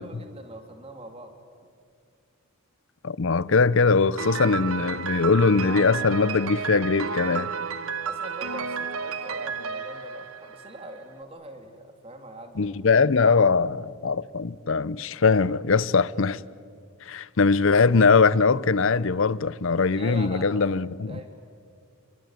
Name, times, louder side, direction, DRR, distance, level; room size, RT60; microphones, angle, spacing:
voice 1, 0.0-1.3 8.0-12.6 19.9-20.6 21.1-21.3, right 1 dB, 25° right, 3.0 m, -42 dB
voice 2, 3.0-7.5 12.6-16.4 17.0-21.2, left 4 dB, 60° left, 0.6 m, -21 dB
Piano, 4.2-11.0, right 5 dB, 70° right, 1.1 m, -32 dB
29.0 x 22.5 x 9.1 m
head